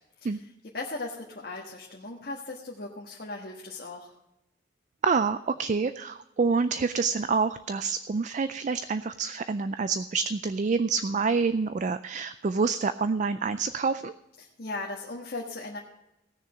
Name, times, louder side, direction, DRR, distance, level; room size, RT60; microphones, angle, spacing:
voice 1, 0.2-4.1 14.4-15.8, left 2 dB, 55° left, -1 dB, 1.4 m, -38 dB
voice 2, 5.0-14.1, right 4 dB, 40° right, 12 dB, 0.4 m, -27 dB
17.5 x 6.7 x 5.0 m, 0.90 s
head